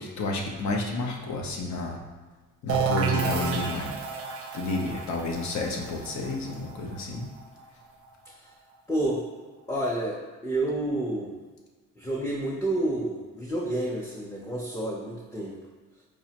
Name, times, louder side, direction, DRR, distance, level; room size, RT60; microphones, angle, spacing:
voice 1, 0.0-2.0 2.6-3.9 4.5-7.3, left 2 dB, 65° left, 0 dB, 0.7 m, -31 dB
sound 1, 2.7-8.3, right 5 dB, 50° right, 0.5 m, -31 dB
voice 2, 8.9-9.2 9.7-10.2 10.4-11.3 12.0-15.6, right 1 dB, 10° left, -6 dB, 0.6 m, -29 dB
4.8 x 2.1 x 2.8 m, 1.4 s
cardioid pair, 90°, 30 cm